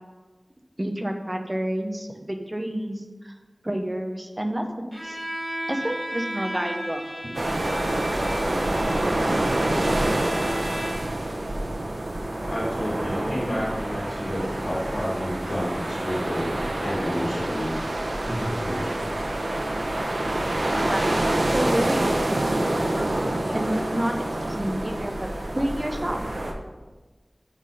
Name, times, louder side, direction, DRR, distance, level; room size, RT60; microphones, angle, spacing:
voice 1, 0.8-3.3 3.6-5.2 5.7-7.4 20.9-22.4 23.5-24.2 24.4-25.3 25.5-26.2, right 1 dB, 30° right, 4 dB, 0.9 m, -29 dB
Bowed string instrument, 4.9-11.2, equal, 10° right, 1.5 m, -35 dB
sound 1, 7.3-26.5, right 1 dB, 90° right, 0.8 m, -27 dB
voice 2, 12.5-17.7 18.2-18.9 19.9-20.0 23.4-23.6, equal, 80° left, -6 dB, 2.4 m, -30 dB
6.3 x 5.9 x 5.0 m, 1.2 s
wide cardioid pair, 40°, 0 cm